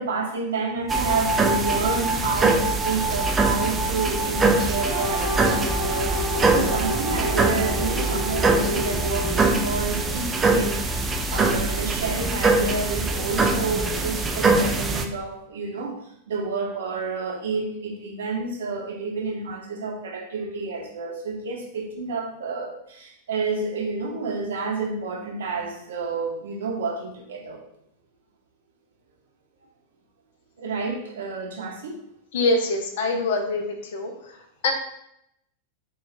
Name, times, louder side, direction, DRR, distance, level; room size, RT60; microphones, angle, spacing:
voice 1, 0.0-27.6 30.6-32.0, right 4 dB, 60° right, 0 dB, 0.7 m, -30 dB
sound 1, 0.9-15.1, right 3 dB, 15° right, 0.3 m, -23 dB
sound 2, 4.8-9.8, left 1 dB, 20° left, 1.2 m, -30 dB
voice 2, 32.3-34.7, left 2 dB, 55° left, 4 dB, 0.6 m, -25 dB
3.8 x 2.3 x 3.1 m, 0.76 s
figure-of-eight pair, 90°, 0 cm